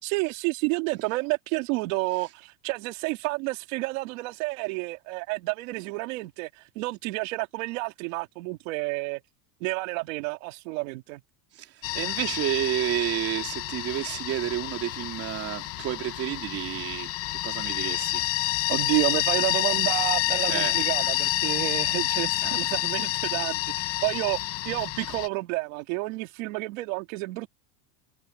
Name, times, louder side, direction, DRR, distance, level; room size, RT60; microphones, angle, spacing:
voice 1, 0.0-9.2 9.6-11.2 18.7-24.4 24.6-27.5, right 23 dB, 60° right, 2.6 m, -30 dB
voice 2, 11.5-18.3 20.5-21.1, right 13 dB, 30° right, 3.6 m, -31 dB
sound 1, 11.8-25.3, left 15 dB, 30° left, 1.0 m, -28 dB
cardioid pair, 180°, 44 cm